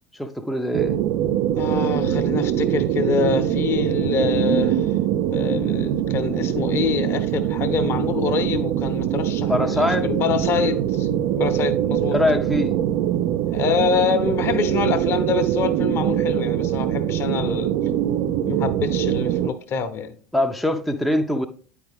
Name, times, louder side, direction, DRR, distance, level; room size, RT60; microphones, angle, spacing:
voice 1, 0.1-1.0 9.5-10.1 12.0-12.8 20.3-21.5, left 1 dB, ahead, 0.5 m, -23 dB
sound 1, 0.7-19.5, right 11 dB, 50° right, 0.4 m, -23 dB
voice 2, 1.6-5.0 5.3-12.1 13.5-17.7 18.5-20.1, left 6 dB, 40° left, 0.8 m, -26 dB
9.3 x 4.8 x 3.4 m
figure-of-eight pair, 75°, 7 cm